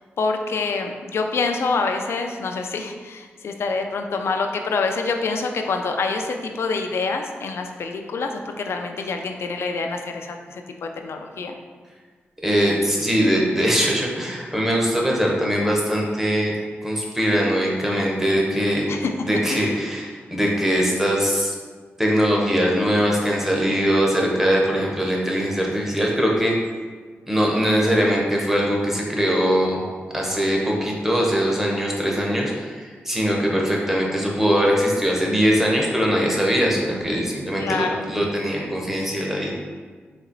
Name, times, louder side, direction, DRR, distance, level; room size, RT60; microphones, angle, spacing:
voice 1, 0.2-11.6 18.9-19.1 19.5-19.7 37.6-38.0, left 4 dB, 70° left, 4 dB, 0.4 m, -26 dB
voice 2, 12.4-16.5 16.8-18.9 19.2-21.5 22.0-26.5 27.3-29.8 30.1-39.5, equal, 10° right, -2 dB, 0.9 m, -21 dB
4.1 x 2.9 x 3.9 m, 1.5 s
wide cardioid pair, 90°, 4 cm